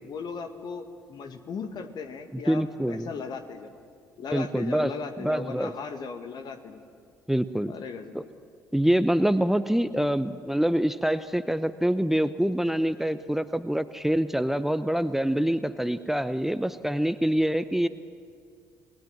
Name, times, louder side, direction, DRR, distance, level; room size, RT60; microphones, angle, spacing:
voice 1, 0.0-3.8 4.2-6.8 7.7-8.2, left 5 dB, 50° left, 7 dB, 2.1 m, -37 dB
voice 2, 2.5-3.1 4.3-4.9 5.2-5.7 7.3-7.7 8.1-8.2 8.7-17.9, right 1 dB, 5° right, 14 dB, 0.8 m, -25 dB
29.5 x 20.0 x 7.4 m, 2.2 s
figure-of-eight pair, 45°, 9 cm